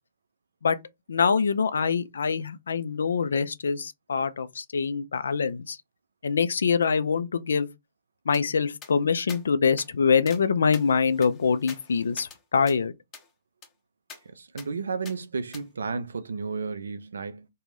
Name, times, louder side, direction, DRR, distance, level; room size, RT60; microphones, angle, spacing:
voice 1, 1.1-5.8 6.2-7.7 8.3-12.9, left 5 dB, 65° left, 0.4 m, -24 dB
sound 1, 8.3-8.4 8.8-8.9 9.3-9.4 9.8-9.9 10.3-10.4 10.7-12.4 12.7-12.8 13.1-13.3 13.6-13.7 14.1-14.2 14.6-14.7 15.0-15.2 15.5-15.6, left 6 dB, 20° left, 0.7 m, -45 dB
voice 2, 14.3-17.5, right 4 dB, 70° right, 0.5 m, -33 dB
2.5 x 2.3 x 3.2 m
figure-of-eight pair, 125°, 0 cm